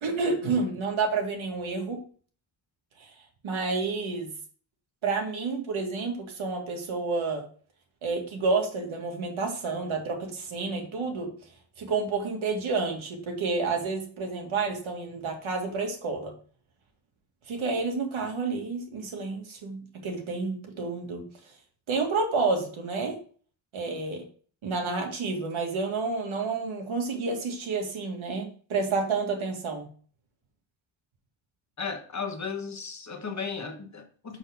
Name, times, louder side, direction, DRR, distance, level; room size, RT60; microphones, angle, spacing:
voice 1, 0.0-2.0 3.0-3.1 3.4-4.3 5.0-7.4 8.0-11.3 11.8-16.3 17.5-21.3 21.9-23.2 23.7-24.2 24.6-29.9, right 4 dB, 80° right, 2 dB, 2.0 m, -29 dB
voice 2, 31.8-34.4, left 5 dB, 35° left, 5 dB, 1.2 m, -35 dB
6.4 x 6.2 x 3.5 m, 0.43 s
wide cardioid pair, 130°, 47 cm